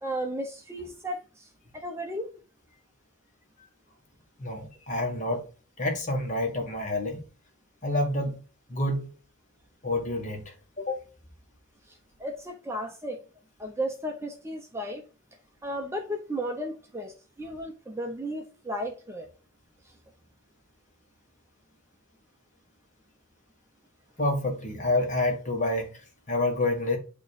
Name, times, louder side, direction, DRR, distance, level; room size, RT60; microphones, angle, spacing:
voice 1, 0.0-2.3 11.9-13.2 13.6-15.0 15.6-19.3 19.8-19.9, equal, 15° right, 0.7 m, -34 dB
voice 2, 4.4-5.4 5.8-7.2 7.8-8.4 8.7-9.1 9.8-11.0 24.2-26.0 26.3-27.0, left 2 dB, 35° left, 1.7 m, -28 dB
8.3 x 3.1 x 4.7 m
head